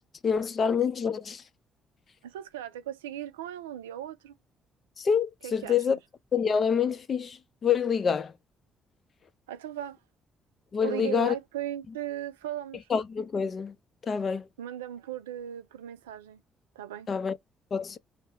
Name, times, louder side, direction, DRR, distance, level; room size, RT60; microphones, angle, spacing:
voice 1, 0.2-1.4 5.0-6.0 6.3-8.3 10.7-11.3 12.9-13.7 14.1-14.4 17.1-17.4 17.7-18.0, left 7 dB, 45° left, 0.5 m, -27 dB
voice 2, 2.2-4.4 5.4-6.0 9.5-10.0 10.8-12.9 14.6-16.4 16.8-17.1, right 12 dB, 80° right, 0.3 m, -37 dB
2.1 x 2.0 x 3.2 m
figure-of-eight pair, 45°, 0 cm